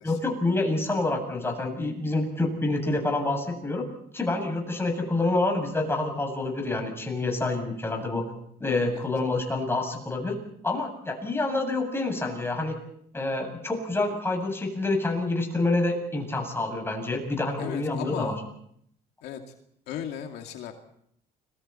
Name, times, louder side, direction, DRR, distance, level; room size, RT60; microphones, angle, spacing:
voice 1, 0.0-3.9 4.1-8.2 8.6-10.4 10.6-12.8 13.1-18.3, left 2 dB, 15° left, 2 dB, 7.7 m, -27 dB
voice 2, 17.6-18.4 19.2-19.4 19.9-20.7, left 10 dB, 80° left, 3 dB, 2.4 m, -36 dB
30.0 x 22.5 x 4.4 m, 0.69 s
cardioid pair, 110°, 17 cm